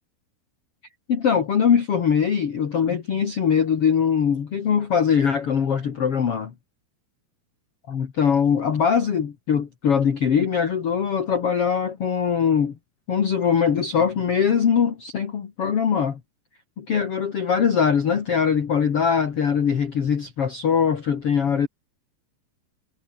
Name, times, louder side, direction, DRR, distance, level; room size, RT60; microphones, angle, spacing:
voice 1, 1.1-6.5 7.9-12.8 13.1-16.2 16.8-21.7, left 7 dB, 45° left, 2.5 m, -22 dB
omnidirectional pair, 4.4 m